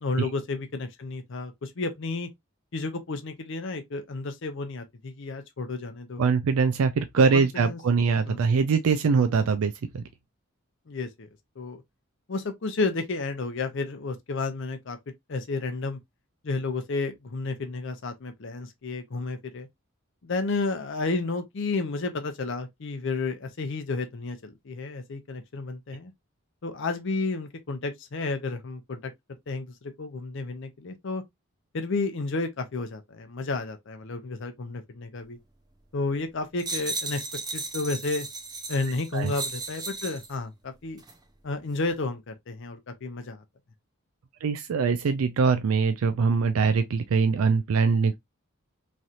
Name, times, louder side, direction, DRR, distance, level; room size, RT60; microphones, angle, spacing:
voice 1, 0.0-2.3 2.7-6.2 7.2-7.8 8.3-8.4 10.9-11.3 11.6-11.8 12.3-15.0 15.3-16.0 16.4-19.7 20.2-26.1 26.6-29.1 29.5-31.2 31.7-35.4 35.9-37.3 37.5-38.3 38.7-41.0 41.4-43.4, left 3 dB, 60° left, 0.6 m, -31 dB
voice 2, 6.2-10.0 39.1-39.3 44.4-48.1, right 5 dB, 75° right, 0.4 m, -23 dB
sound 1, 36.6-40.3 41.0-41.2, right 3 dB, 20° right, 0.4 m, -35 dB
3.2 x 2.8 x 2.4 m
head